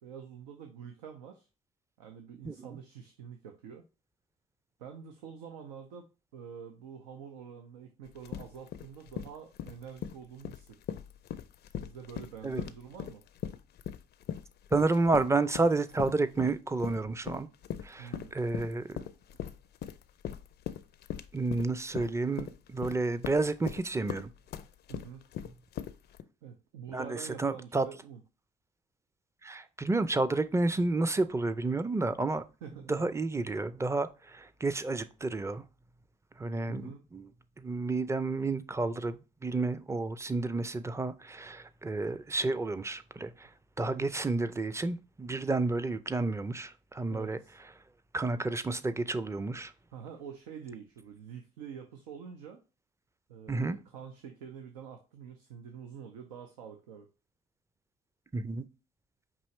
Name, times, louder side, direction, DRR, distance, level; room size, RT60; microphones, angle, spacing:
voice 1, 0.0-1.5 2.0-3.8 4.8-10.8 11.8-13.2 18.0-18.4 24.9-25.3 26.4-28.2 32.6-33.1 36.7-37.1 43.8-44.1 47.1-47.5 49.9-52.6 53.3-57.1, right 7 dB, 85° right, 0.5 m, -46 dB
sound 1, 8.1-26.2, left 9 dB, 55° left, 0.4 m, -40 dB
voice 2, 14.7-17.5 17.8-19.0 21.3-24.3 26.9-27.9 29.4-32.4 32.9-35.6 36.4-37.3 37.6-43.5 43.8-47.4 48.1-49.7 53.5-53.8 58.3-58.6, right 3 dB, 15° right, 0.5 m, -31 dB
5.4 x 2.9 x 3.1 m
hypercardioid pair, 50°, 21 cm